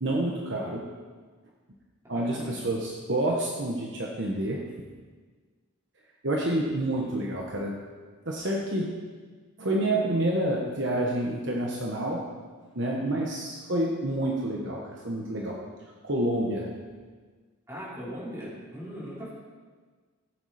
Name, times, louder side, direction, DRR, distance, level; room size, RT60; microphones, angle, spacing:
voice 1, 0.0-0.9 2.1-4.7 6.2-7.8 8.2-9.0 9.6-12.3 12.7-15.6 16.0-16.7, right 1 dB, 55° right, -2 dB, 1.3 m, -28 dB
voice 2, 2.0-2.5 17.7-19.3, equal, 15° right, -9 dB, 4.1 m, -39 dB
15.5 x 8.0 x 4.3 m, 1.5 s
head